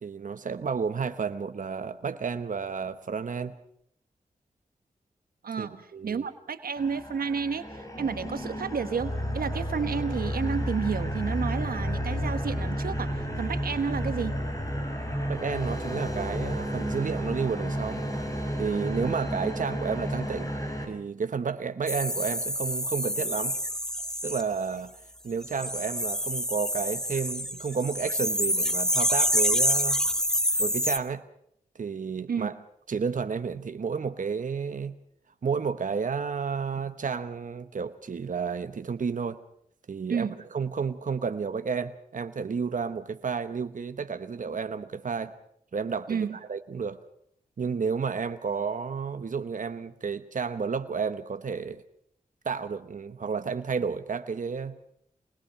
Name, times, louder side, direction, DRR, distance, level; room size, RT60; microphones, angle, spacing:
voice 1, 0.0-3.5 5.6-6.3 15.3-18.1 18.4-20.5 20.9-23.6 24.2-24.9 25.2-30.0 30.6-31.2 31.8-32.5 32.9-35.0 35.4-39.4 39.9-40.3 40.5-45.3 45.7-47.0 47.6-51.8 52.4-54.8, right 5 dB, 60° right, 10 dB, 1.0 m, -31 dB
voice 2, 5.4-14.4 32.3-32.5 40.1-40.4 46.1-46.4, right 6 dB, 85° right, 10 dB, 1.2 m, -31 dB
sound 1, 6.8-20.9, equal, 25° left, 6.3 m, -31 dB
sound 2, 21.9-24.4 25.4-31.0, equal, 5° left, 1.5 m, -27 dB
24.5 x 20.0 x 5.7 m, 0.70 s
cardioid pair, 50°, 15 cm